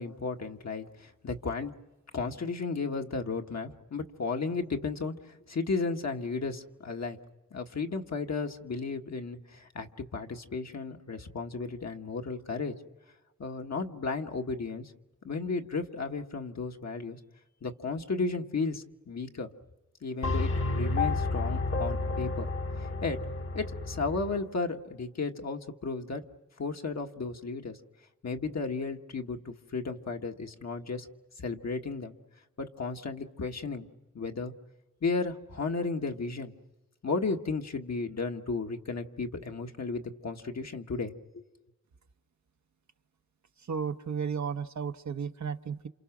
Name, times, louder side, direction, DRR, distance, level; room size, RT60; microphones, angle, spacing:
voice 1, 0.0-1.7 2.1-7.2 7.5-12.7 13.4-14.9 15.2-17.2 17.6-19.5 20.0-22.5 23.0-23.2 23.5-26.2 26.6-27.8 28.2-31.1 31.4-32.1 32.6-33.9 34.1-34.5 35.0-36.5 37.0-41.4, left 4 dB, 60° left, 3 dB, 1.7 m, -34 dB
sound 1, 20.2-24.4, left 3 dB, 45° left, 1.3 m, -31 dB
voice 2, 43.7-45.9, right 6 dB, 70° right, 6 dB, 1.1 m, -33 dB
30.0 x 27.5 x 6.1 m, 1.1 s
cardioid pair, 55°, 30 cm